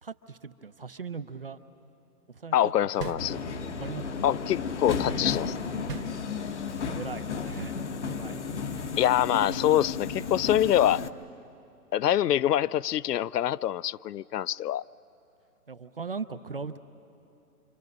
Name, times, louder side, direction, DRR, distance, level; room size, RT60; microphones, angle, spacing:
voice 1, 0.0-1.6 2.3-2.6 3.0-3.2 3.6-4.2 6.9-7.8 8.1-8.4 15.7-16.8, right 5 dB, 40° right, 0.5 m, -39 dB
voice 2, 2.5-3.4 4.2-5.7 9.0-11.0 11.9-14.8, left 11 dB, 90° left, 0.5 m, -25 dB
sound 1, 3.0-3.9 5.9-6.8, right 6 dB, 90° right, 1.5 m, -40 dB
Subway metro underground, 3.2-11.1, left 5 dB, 50° left, 1.0 m, -33 dB
27.0 x 25.5 x 5.3 m
hypercardioid pair, 170°, 46 cm